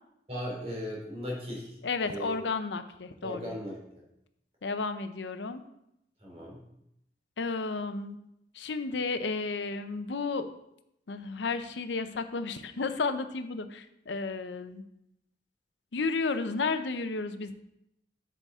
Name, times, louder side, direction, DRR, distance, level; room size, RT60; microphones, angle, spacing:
voice 1, 0.3-1.7 2.0-2.3 3.2-3.8 6.2-6.6, equal, 35° right, -3 dB, 2.7 m, -37 dB
voice 2, 1.8-3.4 4.6-5.6 7.4-8.2 8.6-10.5 11.1-14.8 15.9-17.5, left 4 dB, 80° left, 9 dB, 0.6 m, -32 dB
8.4 x 6.8 x 3.6 m, 0.80 s
head